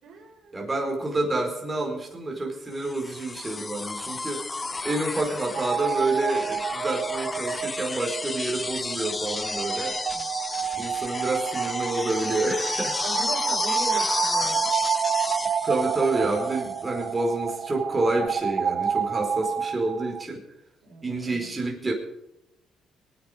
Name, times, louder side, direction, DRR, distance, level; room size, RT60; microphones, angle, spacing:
voice 1, 0.0-0.9 10.1-10.3 13.0-14.7 20.8-21.5, right 2 dB, 75° right, 0 dB, 5.2 m, -39 dB
voice 2, 0.5-4.5 4.8-9.9 10.8-13.0 13.9-14.1 15.6-20.4 21.0-21.9, right 2 dB, 20° right, 1 dB, 4.8 m, -28 dB
sound 1, 2.8-16.8 18.3-18.4, left 3 dB, 25° left, 0.7 m, -32 dB
sound 2, 5.5-20.2, right 7 dB, 55° right, 0.7 m, -29 dB
22.0 x 10.0 x 5.2 m, 0.89 s
cardioid pair, 90°, 0 cm